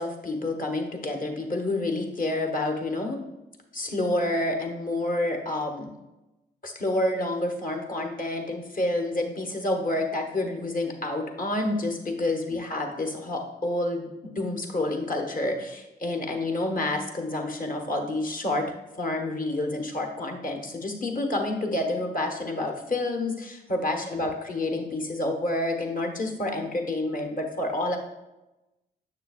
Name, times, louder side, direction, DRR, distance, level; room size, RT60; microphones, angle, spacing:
voice 1, 0.0-3.2 3.7-5.9 6.6-18.7 19.0-28.0, left 2 dB, 40° left, 3 dB, 1.3 m, -28 dB
6.8 x 6.7 x 2.5 m, 0.99 s
supercardioid pair, 45°, 21 cm